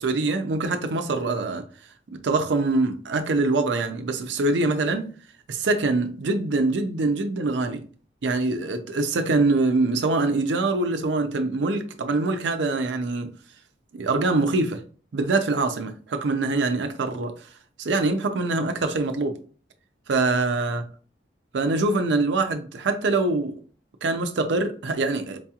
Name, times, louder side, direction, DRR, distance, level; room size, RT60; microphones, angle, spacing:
voice 1, 0.0-1.7 2.1-5.1 5.5-7.8 8.2-13.3 13.9-14.8 15.1-17.3 17.8-19.4 20.1-20.8 21.5-23.5 24.0-25.4, right 3 dB, 75° right, 0.5 m, -24 dB
4.5 x 2.8 x 2.3 m
head